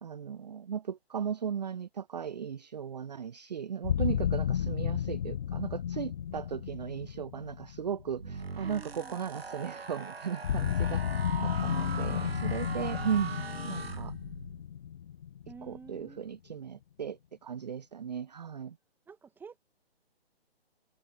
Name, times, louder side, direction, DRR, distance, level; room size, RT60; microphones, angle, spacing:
voice 1, 0.0-13.3 13.6-14.1 15.6-18.8, right 8 dB, 40° right, 0.5 m, -36 dB
sound 1, 3.8-8.8 10.4-16.1, left 9 dB, 35° left, 0.8 m, -33 dB
sound 2, 8.1-14.6, right 5 dB, 70° right, 1.9 m, -40 dB
voice 2, 8.6-9.2 11.7-12.4 15.5-16.2 19.1-19.6, right 5 dB, 5° right, 2.2 m, -49 dB
figure-of-eight pair, 135°, 32 cm